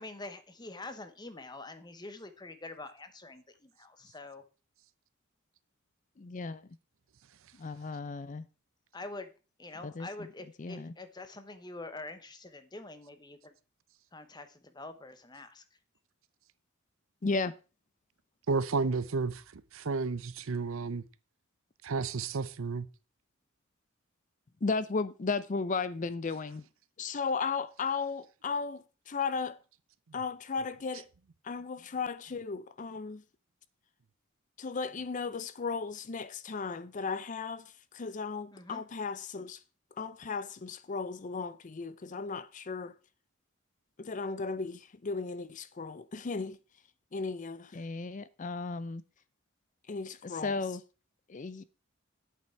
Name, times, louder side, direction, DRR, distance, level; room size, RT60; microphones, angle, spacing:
voice 1, 0.0-4.4 8.9-9.3 9.6-13.5 14.1-15.6 38.5-38.9, left 2 dB, 20° left, 1.0 m, -45 dB
voice 2, 6.2-6.6 7.6-8.4 9.8-10.1 10.6-10.9 17.2-17.5 24.6-26.6 27.0-29.6 30.1-31.1 31.4-33.2 34.6-37.6 37.9-39.6 40.0-42.9 44.0-46.6 47.1-49.0 49.9-50.8 51.3-51.6, left 4 dB, 35° left, 0.5 m, -35 dB
voice 3, 18.5-19.4 19.7-21.0 21.8-22.9, right 4 dB, 70° right, 0.6 m, -31 dB
8.3 x 8.2 x 4.5 m
head